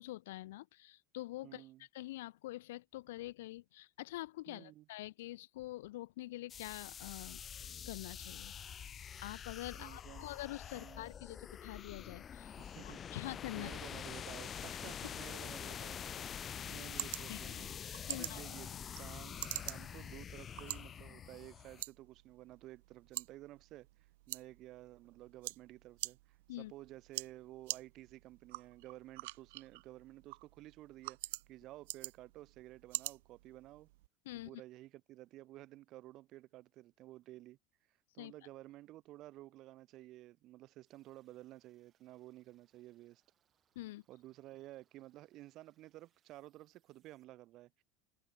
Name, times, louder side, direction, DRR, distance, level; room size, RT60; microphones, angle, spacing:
voice 1, 0.0-1.6 1.9-7.4 7.9-8.5 9.2-12.6 12.8-13.7 17.3-17.4 18.1-18.4 26.5-26.7 34.2-34.6 38.2-38.3 43.7-44.0, left 17 dB, 90° left, 0.9 m, -45 dB
voice 2, 1.4-1.8 4.5-4.9 9.7-10.2 10.7-11.0 12.6-13.1 13.5-16.0 16.6-23.9 24.3-33.9 34.4-37.6 38.1-43.2 44.1-47.8, right 16 dB, 45° right, 1.4 m, -53 dB
sound 1, 6.5-21.8, left 8 dB, 25° left, 0.5 m, -46 dB
sound 2, 16.1-34.1, right 19 dB, 80° right, 0.8 m, -47 dB
sound 3, 40.9-47.2, right 9 dB, 30° right, 6.7 m, -81 dB
supercardioid pair, 145°, 0 cm